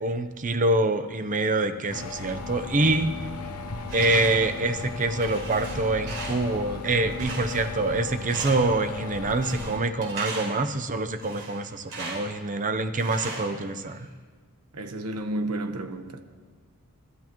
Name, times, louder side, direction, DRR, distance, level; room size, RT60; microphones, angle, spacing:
voice 1, 0.0-3.2 3.9-14.1, right 2 dB, 35° right, 0.8 m, -25 dB
sound 1, 1.9-9.8, left 3 dB, 80° left, 1.0 m, -36 dB
sound 2, 3.2-9.4, equal, 50° left, 1.6 m, -48 dB
Tools, 3.9-4.5 5.0-6.6 7.2-7.9 8.2-8.8 9.4-10.7 11.2-12.4 13.0-14.0, right 3 dB, 65° right, 5.2 m, -38 dB
voice 2, 14.7-16.2, right 1 dB, 85° right, 1.2 m, -31 dB
28.5 x 13.0 x 3.1 m
head